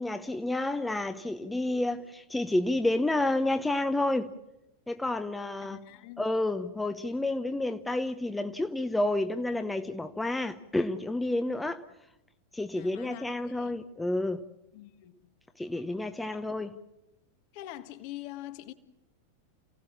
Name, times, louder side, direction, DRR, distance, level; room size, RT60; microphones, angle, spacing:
voice 1, 0.0-4.3 4.9-5.8 6.2-11.8 12.5-14.4 15.6-16.8, left 2 dB, 5° left, 0.9 m, -30 dB
voice 2, 5.6-6.2 12.7-13.8 14.7-15.2 16.3-16.5 17.5-18.7, left 14 dB, 45° left, 1.6 m, -44 dB
29.0 x 17.0 x 7.4 m
figure-of-eight pair, 90°, 0 cm